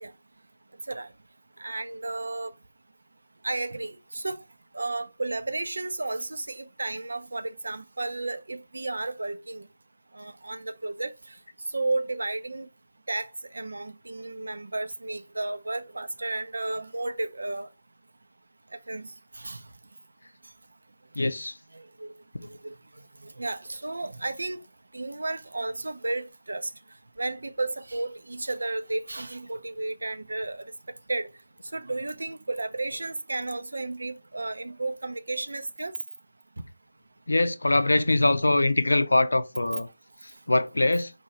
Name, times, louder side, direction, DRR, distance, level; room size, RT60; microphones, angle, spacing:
voice 1, 1.6-2.5 3.4-4.4 4.7-9.7 10.1-11.1 11.7-12.7 13.1-17.7 18.9-19.1 19.4-19.6 21.7-22.1 22.6-22.7 23.2-24.6 24.9-26.7 27.2-30.7 31.1-31.3 31.7-35.9, right 2 dB, 65° right, 0.5 m, -33 dB
voice 2, 21.2-21.5 37.3-39.9 40.5-41.1, left 2 dB, 70° left, 0.5 m, -23 dB
4.2 x 2.7 x 4.3 m
figure-of-eight pair, 155°, 0 cm